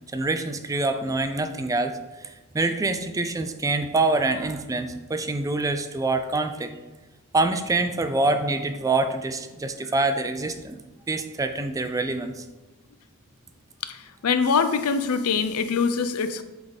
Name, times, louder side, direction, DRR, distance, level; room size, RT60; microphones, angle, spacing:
voice 1, 0.1-6.7 7.3-10.8 11.1-12.4, right 2 dB, 15° right, 8 dB, 0.3 m, -25 dB
voice 2, 13.8-16.4, left 5 dB, 75° left, 10 dB, 0.5 m, -24 dB
8.4 x 3.5 x 4.0 m, 1.1 s
head